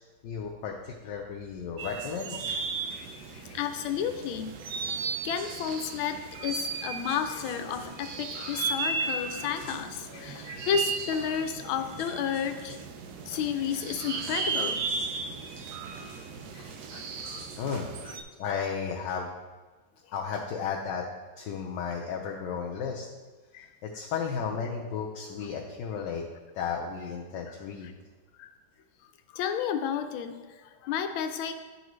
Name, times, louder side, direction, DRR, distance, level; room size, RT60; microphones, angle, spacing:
voice 1, 0.2-2.4 10.1-10.5 17.6-17.9 18.4-19.3 20.1-21.0 21.4-23.1 23.8-26.2 26.5-27.9, left 6 dB, 70° left, -1 dB, 1.2 m, -34 dB
sound 1, 1.8-18.2, right 5 dB, 70° right, 0.9 m, -35 dB
voice 2, 2.9-4.6 5.2-12.8 13.3-14.8 16.9-17.5 18.1-18.2 23.5-23.7 28.4-28.5 29.3-31.5, left 8 dB, 85° left, 7 dB, 1.4 m, -32 dB
11.0 x 3.9 x 3.1 m, 1.3 s
omnidirectional pair, 2.2 m